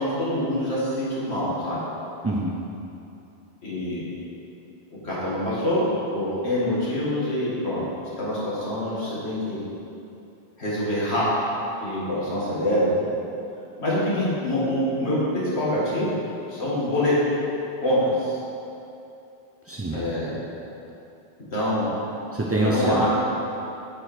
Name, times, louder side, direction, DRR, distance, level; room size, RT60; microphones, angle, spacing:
voice 1, 0.0-1.8 3.6-4.1 5.0-5.9 6.1-7.8 8.2-9.6 10.6-11.3 11.8-13.1 13.8-16.2 16.5-17.1 17.8-18.4 19.9-20.4 21.5-21.9 22.6-23.1, left 1 dB, 65° left, -8 dB, 2.3 m, -25 dB
voice 2, 2.2-2.6 19.6-20.0 22.3-23.1, right 1 dB, 25° right, -4 dB, 0.3 m, -25 dB
8.6 x 5.0 x 4.5 m, 2.7 s
omnidirectional pair, 1.2 m